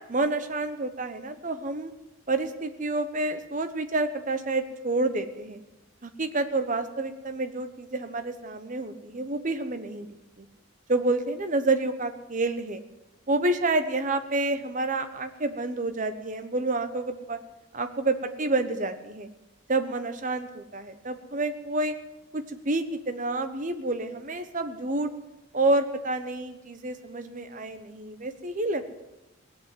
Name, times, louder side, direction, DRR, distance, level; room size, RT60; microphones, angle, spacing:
voice 1, 0.1-1.9 2.3-5.6 6.0-10.1 10.4-10.5 10.9-12.8 13.3-17.4 17.7-19.3 19.7-21.9 22.3-25.1 25.5-28.8, right 2 dB, 40° right, 9 dB, 1.0 m, -28 dB
18.0 x 8.3 x 7.9 m, 0.97 s
head